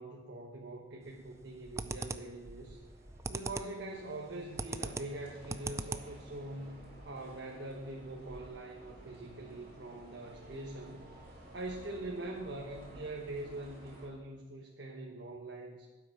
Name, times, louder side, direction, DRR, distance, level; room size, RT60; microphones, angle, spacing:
voice 1, 0.0-2.8 3.3-11.1 11.5-15.9, right 2 dB, 80° right, 0 dB, 1.2 m, -43 dB
sound 1, 0.9-14.1, right 1 dB, 50° right, 3.7 m, -54 dB
sound 2, 1.0-1.4 1.8-2.4 2.9-3.8 4.1-6.3, right 3 dB, 15° right, 0.3 m, -39 dB
12.0 x 9.5 x 4.7 m, 1.2 s
head